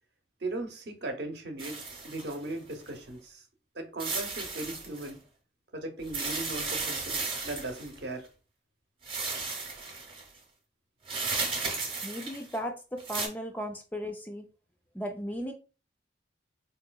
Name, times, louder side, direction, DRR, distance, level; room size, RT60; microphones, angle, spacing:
voice 1, 0.4-3.4 3.7-5.2 5.7-8.3, right 2 dB, 65° right, 0.8 m, -38 dB
sound 1, 1.6-2.9 4.0-5.1 6.0-8.0 9.0-10.3 11.1-12.6 13.0-13.3, right 4 dB, 30° right, 0.7 m, -34 dB
voice 2, 12.0-14.5 14.9-15.5, equal, 10° left, 0.3 m, -36 dB
4.0 x 2.8 x 2.2 m
head